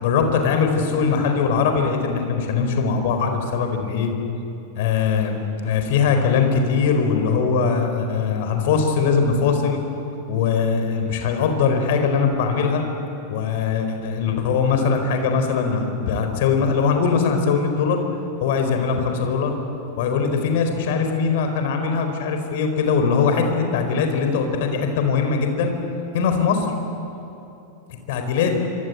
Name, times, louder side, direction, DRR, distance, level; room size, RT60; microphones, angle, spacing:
voice 1, 0.0-4.1 4.8-9.8 10.3-12.8 13.3-18.0 18.4-19.5 20.0-25.7 26.1-26.7 28.1-28.6, left 5 dB, 50° left, 5 dB, 4.5 m, -21 dB
27.0 x 25.5 x 8.3 m, 2.8 s
figure-of-eight pair, 90°, 0 cm